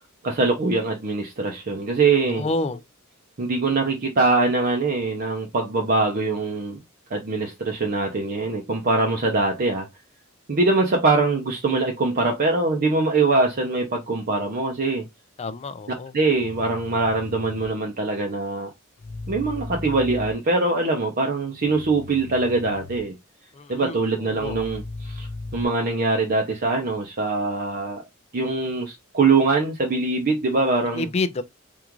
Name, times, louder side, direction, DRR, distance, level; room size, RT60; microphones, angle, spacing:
voice 1, 0.2-2.4 3.4-6.8 7.1-9.9 10.5-15.0 16.1-18.7 19.3-23.1 23.7-25.3 25.5-28.0 28.3-31.1, right 3 dB, 45° right, 0.6 m, -23 dB
voice 2, 2.3-2.8 15.4-16.1 23.5-24.0 24.3-24.6 30.9-31.4, left 3 dB, 30° left, 0.4 m, -28 dB
sound 1, 16.3-17.7 19.0-20.3 21.7-23.0 24.3-25.6, left 3 dB, 85° left, 0.6 m, -36 dB
3.6 x 2.4 x 2.9 m
head